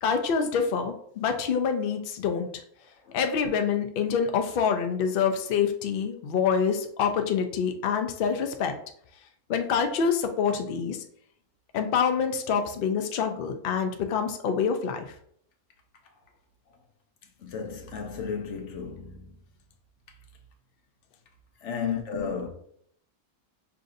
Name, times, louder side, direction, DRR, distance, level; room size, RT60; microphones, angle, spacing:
voice 1, 0.0-2.6 3.1-8.7 9.5-11.0 11.7-15.1, left 6 dB, 85° left, 0.4 m, -26 dB
voice 2, 17.4-19.3 21.6-22.5, left 6 dB, 60° left, 1.0 m, -33 dB
5.7 x 2.6 x 2.5 m
omnidirectional pair, 1.5 m